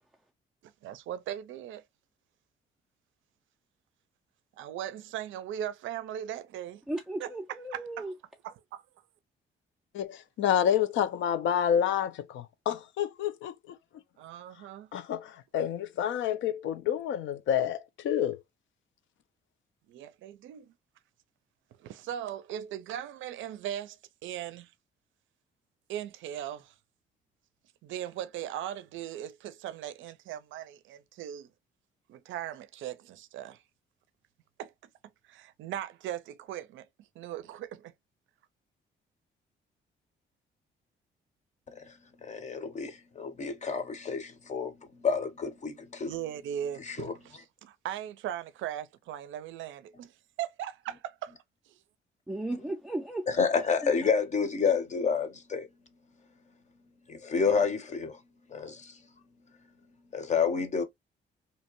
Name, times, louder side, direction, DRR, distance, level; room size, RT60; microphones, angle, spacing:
voice 1, 0.6-1.8 4.6-6.8 7.2-7.3 7.7-8.1 8.4-8.8 14.2-14.9 19.9-20.7 21.8-24.7 25.9-26.7 27.8-31.5 32.1-33.6 34.6-34.7 35.3-36.9 37.2-37.9 46.0-50.1 50.4-51.3 51.7-51.8, right 11 dB, 75° right, 0.4 m, -39 dB
voice 2, 6.9-8.1 52.3-53.5 53.8-53.9, right 1 dB, 5° right, 0.4 m, -35 dB
voice 3, 9.9-13.5 14.9-18.4, left 9 dB, 75° left, 0.4 m, -28 dB
voice 4, 42.2-44.7 45.0-46.1 46.8-47.1 53.3-55.7 57.1-58.2 58.5-58.9 60.1-60.8, left 5 dB, 35° left, 0.7 m, -29 dB
2.8 x 2.1 x 2.9 m
cardioid pair, 90°, 20 cm